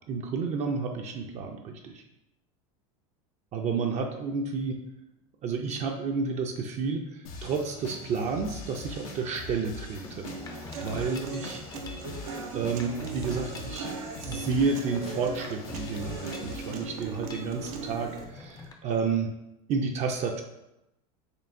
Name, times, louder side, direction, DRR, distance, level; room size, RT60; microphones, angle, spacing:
voice 1, 0.1-2.0 3.5-4.8 5.4-11.6 12.5-13.9 14.2-19.3 19.7-20.4, right 5 dB, 40° right, 2 dB, 0.5 m, -31 dB
sound 1, 7.2-16.8, left 3 dB, 85° left, 0.6 m, -43 dB
Mechanisms, 9.9-18.7, left 3 dB, 20° left, 0.5 m, -46 dB
Human voice / Acoustic guitar, 10.2-18.2, right 4 dB, 85° right, 0.6 m, -39 dB
4.5 x 2.8 x 2.6 m, 0.89 s
supercardioid pair, 115°, 18 cm